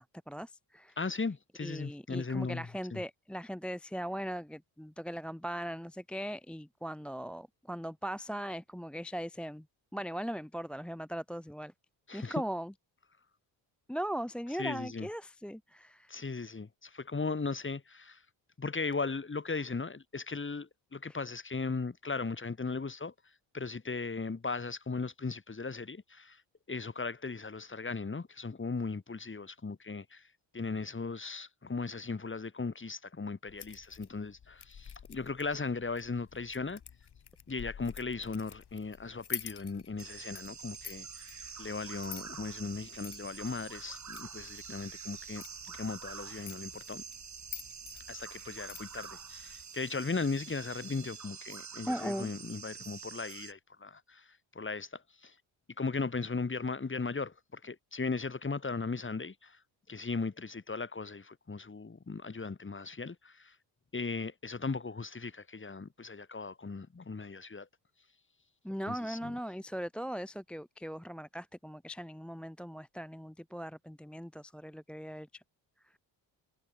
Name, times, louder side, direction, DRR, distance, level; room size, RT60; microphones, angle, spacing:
voice 1, 0.0-1.0 1.6-9.7 9.9-11.7 12.1-12.7 13.9-16.2 21.1-21.2 51.9-52.3 68.6-75.4 75.8-76.0, equal, ahead, 0.7 m, -39 dB
voice 2, 1.0-3.0 12.1-12.4 14.6-15.1 16.1-18.2 18.6-23.1 23.5-26.4 26.7-30.3 30.5-36.8 37.5-47.0 48.1-55.3 55.8-59.6 59.9-63.5 63.9-67.7 68.9-69.3, left 4 dB, 25° left, 2.3 m, -37 dB
sound 1, 33.5-49.6, left 8 dB, 50° left, 5.2 m, -49 dB
sound 2, 40.0-53.5, right 6 dB, 35° right, 1.9 m, -46 dB
supercardioid pair, 65°, 49 cm